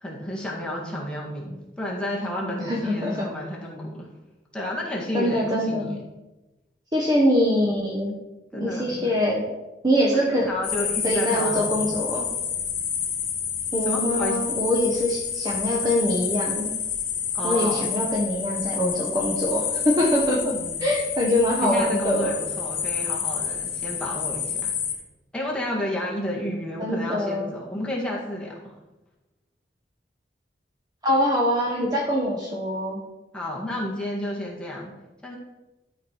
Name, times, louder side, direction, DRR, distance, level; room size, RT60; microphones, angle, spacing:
voice 1, 0.0-4.1 4.5-6.0 8.0-8.2 8.5-9.2 10.1-11.9 13.9-14.4 17.3-17.9 20.5-20.8 21.6-24.7 25.3-28.7 33.3-34.9 35.2-35.4, left 1 dB, 5° left, -3 dB, 1.7 m, -31 dB
voice 2, 2.6-3.3 5.1-6.0 6.9-8.1 8.5-9.4 9.8-10.5 11.0-12.3 13.7-16.7 17.4-20.5 20.8-22.3 26.8-27.5 31.0-33.0, equal, 25° right, -2 dB, 1.1 m, -23 dB
sound 1, 10.6-24.9, left 7 dB, 55° left, 1.7 m, -29 dB
12.0 x 5.1 x 4.5 m, 1.0 s
head